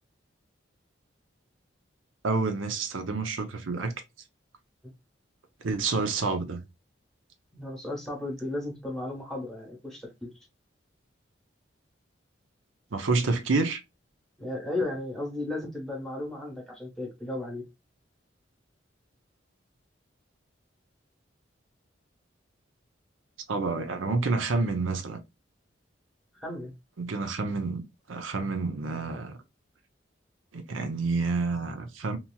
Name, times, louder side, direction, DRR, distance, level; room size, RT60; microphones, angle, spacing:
voice 1, 2.2-3.9 5.6-6.6 12.9-13.8 23.5-25.2 27.0-29.4 30.5-32.2, right 3 dB, 90° right, 0.6 m, -28 dB
voice 2, 7.5-10.5 14.4-17.7 26.3-26.7, left 2 dB, ahead, 1.1 m, -35 dB
2.9 x 2.8 x 2.2 m
head